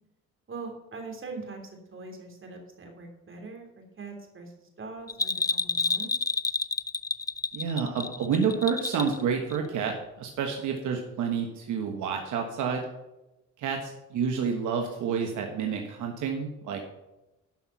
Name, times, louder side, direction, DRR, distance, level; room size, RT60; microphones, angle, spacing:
voice 1, 0.5-6.1, right 3 dB, 40° right, 2 dB, 3.2 m, -42 dB
Bell, 5.1-9.2 9.5-9.6, left 4 dB, 10° left, 0.3 m, -29 dB
voice 2, 7.5-12.8 13.6-16.8, right 6 dB, 80° right, 2 dB, 1.4 m, -29 dB
12.0 x 5.8 x 5.7 m, 0.97 s
cardioid pair, 90°, 30 cm